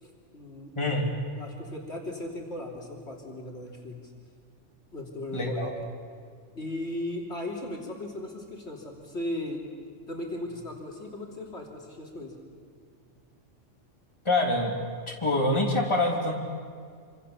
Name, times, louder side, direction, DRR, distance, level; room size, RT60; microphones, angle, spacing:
voice 1, 0.0-0.7 1.4-4.1 4.9-5.9 6.6-9.6 10.1-12.4, left 1 dB, 60° left, 0 dB, 3.5 m, -37 dB
voice 2, 5.3-5.7 14.2-14.7 15.2-16.3, left 2 dB, 25° left, -1 dB, 3.4 m, -25 dB
26.5 x 26.0 x 7.1 m, 2.1 s
omnidirectional pair, 1.3 m